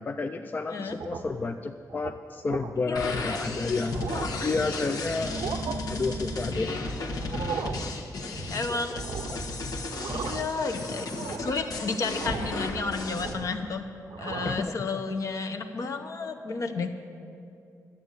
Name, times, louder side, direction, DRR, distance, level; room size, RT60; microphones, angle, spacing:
voice 1, 0.0-4.0 4.4-5.4 5.9-7.2 7.6-7.7 8.2-8.4 8.7-8.8 9.6-9.8 14.4-15.0, left 3 dB, 30° left, 6 dB, 0.4 m, -31 dB
sound 1, 0.9-1.5 1.9-2.1 2.5-2.7 3.3-3.4 3.8-4.5 5.2-5.8 7.2-7.9 8.9-9.5 9.8-10.6 11.0-11.6 12.2-12.6 13.0-13.7 14.0-14.7, right 7 dB, 80° right, 0.6 m, -37 dB
voice 2, 2.8-3.3 4.1-4.5 8.3-9.0 10.1-11.1 11.4-13.8 14.2-16.9, left 4 dB, 55° left, 6 dB, 0.9 m, -32 dB
sound 2, 3.0-13.3, left 2 dB, 80° left, 1.4 m, -34 dB
12.0 x 8.4 x 8.1 m, 2.5 s
wide cardioid pair, 140°, 7 cm